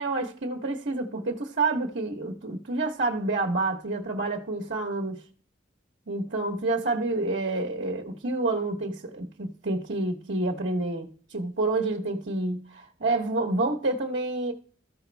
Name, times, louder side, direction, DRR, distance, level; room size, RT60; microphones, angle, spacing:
voice 1, 0.0-5.2 6.1-14.5, right 2 dB, 75° right, 1.2 m, -28 dB
14.5 x 5.1 x 3.4 m
head